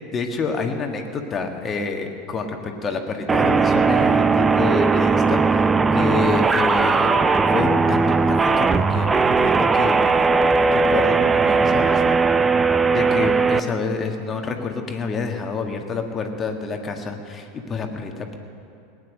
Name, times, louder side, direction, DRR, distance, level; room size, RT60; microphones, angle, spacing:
voice 1, 0.1-5.7 5.9-9.1 9.4-10.0 10.7-12.0 12.9-18.4, left 4 dB, 25° left, 4 dB, 1.6 m, -28 dB
sound 1, 3.3-13.6, right 4 dB, 15° right, 0.5 m, -18 dB
18.5 x 9.7 x 6.5 m, 2.6 s
figure-of-eight pair, 85°, 0 cm